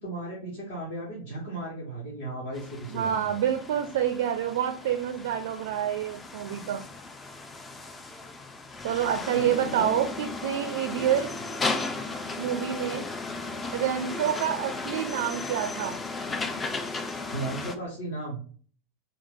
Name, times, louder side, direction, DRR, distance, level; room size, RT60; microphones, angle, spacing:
voice 1, 0.0-3.3 9.3-9.9 17.3-18.4, right 2 dB, 55° left, -5 dB, 1.5 m, -36 dB
sound 1, 2.5-17.8, left 3 dB, 15° left, 0.5 m, -35 dB
voice 2, 2.9-6.8 8.8-11.3 12.4-13.1 13.7-16.0, right 9 dB, 55° right, 7 dB, 0.4 m, -28 dB
3.7 x 2.8 x 3.7 m, 0.43 s
figure-of-eight pair, 85°, 0 cm